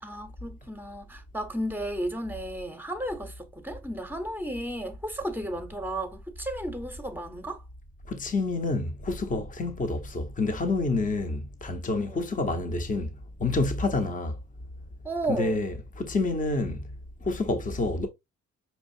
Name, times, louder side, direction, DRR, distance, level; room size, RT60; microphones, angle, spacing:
voice 1, 0.0-7.6 12.0-12.2 15.0-15.6, right 1 dB, 5° right, 0.9 m, -33 dB
voice 2, 8.1-14.4 15.3-16.8 17.2-18.1, left 2 dB, 25° left, 0.8 m, -28 dB
5.5 x 2.4 x 2.6 m
cardioid pair, 90°, 30 cm